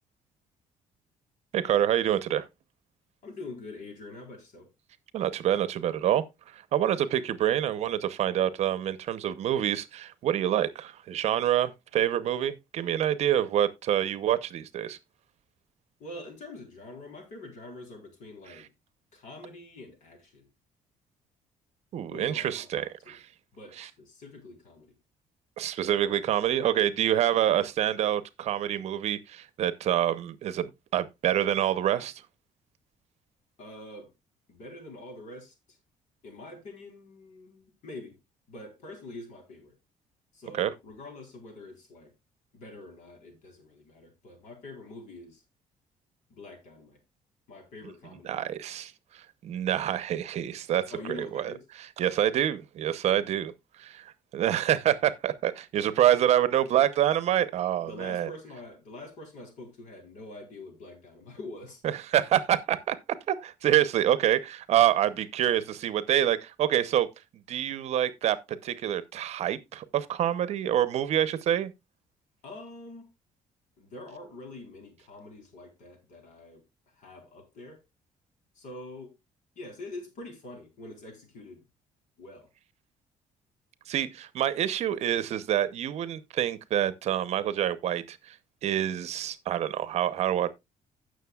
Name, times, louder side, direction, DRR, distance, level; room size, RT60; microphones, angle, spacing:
voice 1, 1.5-2.5 5.1-15.0 21.9-23.2 23.8-23.9 25.6-32.1 40.6-40.7 48.2-51.5 51.8-53.5 53.8-58.3 61.8-63.0 63.3-67.1 67.5-71.7 83.9-88.3 88.6-90.5, right 11 dB, 55° right, 0.8 m, -27 dB
voice 2, 3.2-4.7 16.0-18.7 19.1-20.5 22.1-23.2 23.5-24.9 33.6-34.1 34.5-35.8 36.2-38.2 38.5-39.8 40.3-42.1 42.5-45.4 46.3-47.0 47.5-48.5 50.9-51.6 57.8-61.8 72.4-73.1 73.8-77.8 78.5-79.1 79.6-81.6 82.2-82.5, left 2 dB, 65° left, 4.2 m, -45 dB
16.5 x 6.4 x 2.4 m
cardioid pair, 175°, 14 cm